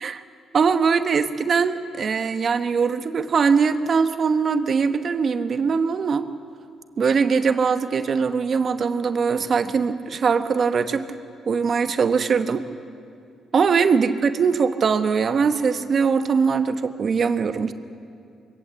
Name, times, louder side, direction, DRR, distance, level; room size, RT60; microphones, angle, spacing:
voice 1, 0.5-6.3 7.0-11.1 11.5-12.6 13.5-17.7, right 5 dB, 50° right, 9 dB, 1.2 m, -21 dB
22.5 x 17.5 x 8.0 m, 2.4 s
cardioid pair, 90°, 0 cm